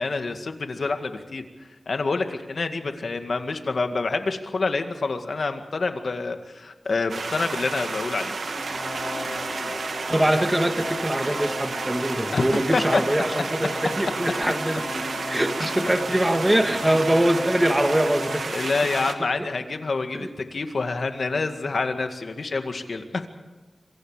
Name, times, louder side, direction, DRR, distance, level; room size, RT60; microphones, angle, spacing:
voice 1, 0.0-1.4 1.9-8.3 12.3-13.0 15.6-15.9 18.5-23.3, left 3 dB, 60° left, 6 dB, 2.0 m, -27 dB
sound 1, 7.1-19.1, right 4 dB, 80° right, 2.0 m, -31 dB
sound 2, 8.4-18.4, left 2 dB, 35° left, 3.5 m, -35 dB
voice 2, 10.1-14.8 15.3-18.5 20.1-20.3, right 1 dB, 10° right, 6 dB, 1.6 m, -23 dB
26.5 x 24.5 x 5.1 m, 1.2 s
wide cardioid pair, 105°, 0 cm